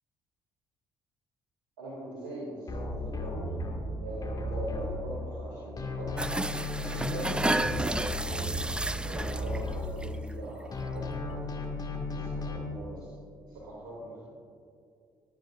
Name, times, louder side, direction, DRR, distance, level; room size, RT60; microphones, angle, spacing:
voice 1, 1.8-3.5 4.0-6.2 6.8-11.6 12.1-13.1 13.5-14.2, right 1 dB, 75° right, -7 dB, 2.7 m, -41 dB
sound 1, 2.7-5.5 5.8-10.4 10.7-12.6, left 1 dB, 35° left, 2.1 m, -35 dB
sound 2, 6.2-9.7 10.0-10.3 10.6-10.7, right 2 dB, 10° right, 0.4 m, -32 dB
21.0 x 9.0 x 2.6 m, 2.4 s
hypercardioid pair, 50°, 11 cm